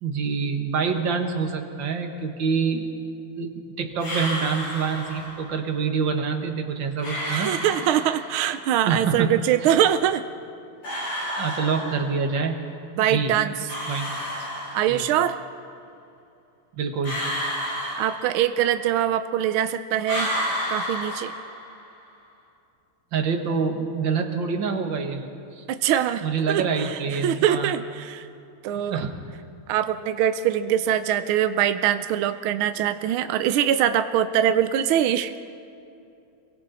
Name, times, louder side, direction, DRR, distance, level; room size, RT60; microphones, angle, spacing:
voice 1, 0.0-2.9 3.4-7.5 8.9-9.3 9.6-9.7 11.3-12.6 13.0-13.3 13.9-14.1 14.9-15.0 16.8-17.2 23.1-25.2 25.6-25.7 26.2-27.7 28.9-29.1, right 5 dB, 60° right, 4 dB, 2.2 m, -26 dB
sound 1, 4.0-5.5 7.0-8.5 10.8-12.4 13.7-15.2 17.0-18.8 20.0-21.9, equal, 85° left, 7.3 m, -31 dB
voice 2, 7.2-10.2 11.4-11.6 13.0-13.5 14.7-15.4 18.0-20.3 20.7-21.3 25.7-28.3 28.6-29.0 29.7-35.3, right 10 dB, 75° right, 10 dB, 1.5 m, -23 dB
27.5 x 23.0 x 4.2 m, 2.7 s
omnidirectional pair, 2.4 m